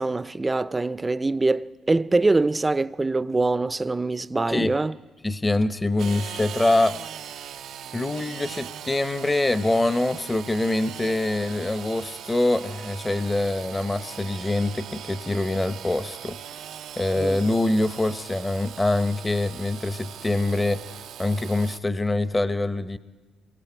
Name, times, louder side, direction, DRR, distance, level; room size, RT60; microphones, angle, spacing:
voice 1, 0.0-4.9 17.2-17.4, right 3 dB, 20° right, 0.5 m, -24 dB
voice 2, 5.2-7.0 7.9-16.4 17.0-20.8 21.2-23.0, left 2 dB, 20° left, 0.8 m, -24 dB
Engine / Sawing, 6.0-21.8, right 10 dB, 75° right, 0.5 m, -40 dB
26.5 x 23.5 x 4.5 m
cardioid pair, 90°, 0 cm